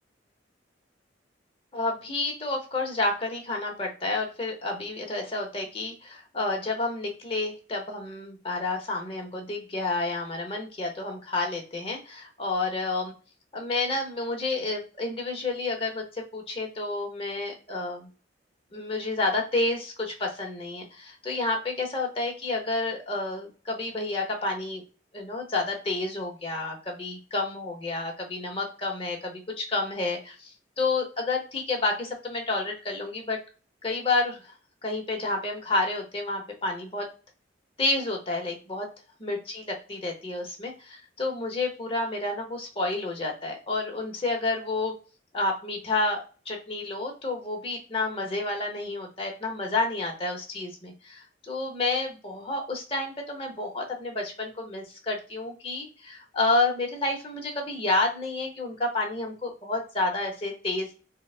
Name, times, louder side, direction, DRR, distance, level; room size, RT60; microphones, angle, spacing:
voice 1, 1.7-13.1 13.5-18.1 18.7-24.8 25.1-30.5 30.8-33.4 33.8-34.4 34.8-37.1 37.8-38.9 39.2-44.9 45.3-60.9, left 2 dB, 30° left, 2 dB, 0.9 m, -30 dB
3.9 x 2.1 x 2.3 m, 0.33 s
head